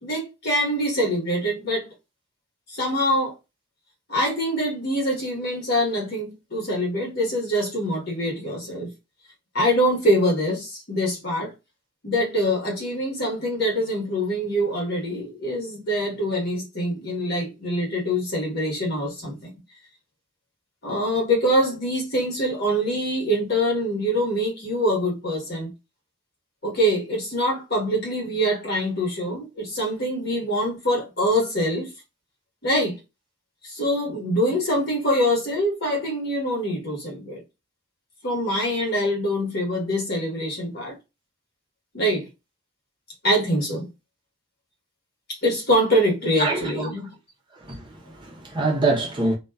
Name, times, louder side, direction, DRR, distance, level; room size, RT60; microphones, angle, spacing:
voice 1, 0.0-1.9 2.7-3.3 4.1-8.9 9.5-11.5 12.0-19.5 20.8-25.7 26.6-31.9 32.6-33.0 33.6-37.4 38.2-41.0 41.9-42.3 43.2-43.9 45.4-47.1, equal, 50° left, 1.2 m, -24 dB
voice 2, 46.4-46.9 47.5-49.4, right 2 dB, 25° right, 0.7 m, -25 dB
2.6 x 2.3 x 2.2 m
head